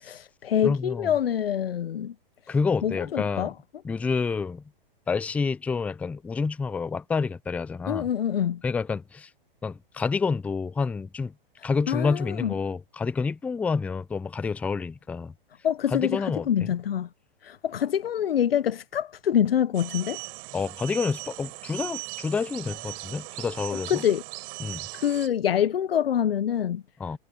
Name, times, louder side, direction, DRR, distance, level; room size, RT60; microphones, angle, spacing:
voice 1, 0.0-2.1 2.8-3.5 7.9-8.6 11.6-12.5 15.6-17.1 17.4-20.2 23.7-24.2 24.9-26.8, left 9 dB, 80° left, 1.1 m, -26 dB
voice 2, 0.6-1.1 2.5-3.5 3.8-4.6 5.1-8.1 8.6-9.3 9.6-11.3 11.6-15.3 15.9-16.5 20.5-24.0 24.6-24.9 27.0-27.2, left 5 dB, 5° left, 0.4 m, -28 dB
sound 1, 19.7-25.3, right 34 dB, 45° right, 6.3 m, -39 dB
hypercardioid pair, 125°, 29 cm